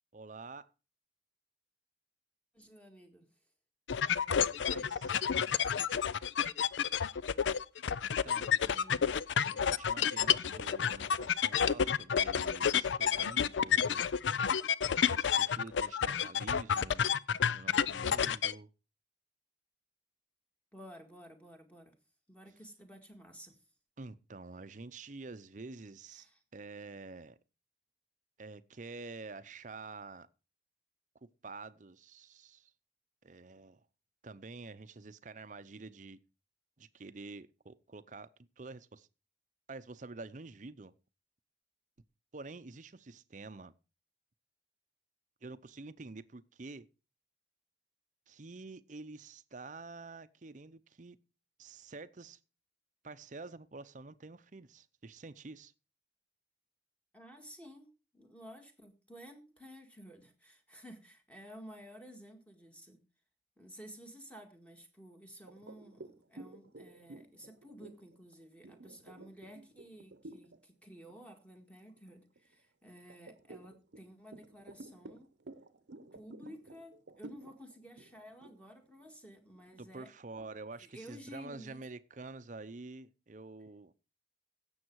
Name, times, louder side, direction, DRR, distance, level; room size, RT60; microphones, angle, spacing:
voice 1, 0.1-0.7 4.3-5.3 8.2-8.6 9.5-14.1 15.1-17.1 17.5-18.7 24.0-26.3 26.5-27.4 28.4-30.3 31.4-32.7 33.2-33.8 34.2-36.2 36.8-39.1 39.7-40.9 42.3-43.7 45.4-46.9 48.3-51.2 51.6-52.4 53.0-55.7 79.8-83.9, right 3 dB, 45° right, 0.6 m, -48 dB
voice 2, 2.5-3.3 8.6-9.1 20.7-22.0 22.3-23.6 26.1-26.4 57.1-63.0 63.6-75.3 76.1-80.1 80.7-81.9, equal, 5° left, 1.8 m, -53 dB
sound 1, 3.9-18.5, left 7 dB, 85° left, 0.5 m, -30 dB
sound 2, 65.5-70.6 71.0-71.3 71.7-72.5 73.1-79.8, right 2 dB, 75° right, 0.8 m, -52 dB
16.0 x 7.2 x 4.6 m
head